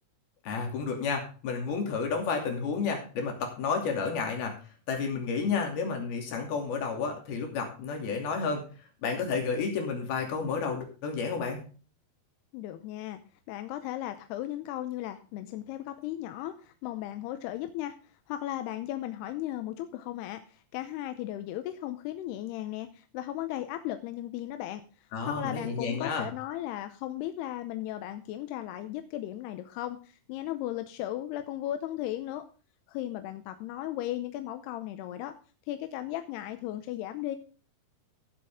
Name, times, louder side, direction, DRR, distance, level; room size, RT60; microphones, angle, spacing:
voice 1, 0.4-4.6 4.9-8.7 9.0-11.6 25.1-26.3, left 5 dB, 70° left, 2 dB, 4.6 m, -31 dB
voice 2, 12.5-13.2 13.5-18.0 18.3-24.8 25.2-32.4 32.9-35.3 35.7-37.4, left 13 dB, 90° left, 9 dB, 2.8 m, -36 dB
16.0 x 7.7 x 3.6 m, 0.37 s
omnidirectional pair, 4.6 m